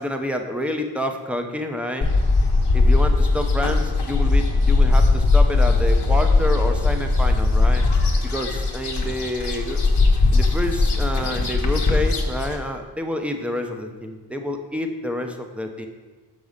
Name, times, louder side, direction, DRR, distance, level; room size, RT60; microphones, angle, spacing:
voice 1, 0.0-2.1 2.7-7.9 8.2-9.8 10.3-15.9, left 1 dB, 5° right, 4 dB, 0.7 m, -28 dB
Gorrions-Alejandro y Daniel, 2.0-12.6, left 3 dB, 65° left, 1.1 m, -19 dB
6.0 x 5.5 x 6.6 m, 1.4 s
wide cardioid pair, 80°, 42 cm